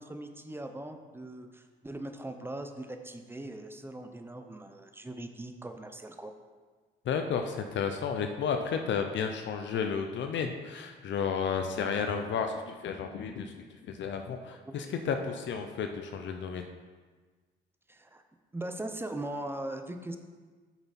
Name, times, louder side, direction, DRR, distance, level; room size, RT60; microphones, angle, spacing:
voice 1, 0.0-6.3 14.6-14.9 17.9-18.2 18.5-20.2, right 1 dB, 10° right, 6 dB, 0.8 m, -40 dB
voice 2, 7.0-16.7, left 6 dB, 65° left, 5 dB, 0.7 m, -32 dB
8.5 x 6.8 x 4.2 m, 1.4 s
cardioid pair, 90°, 20 cm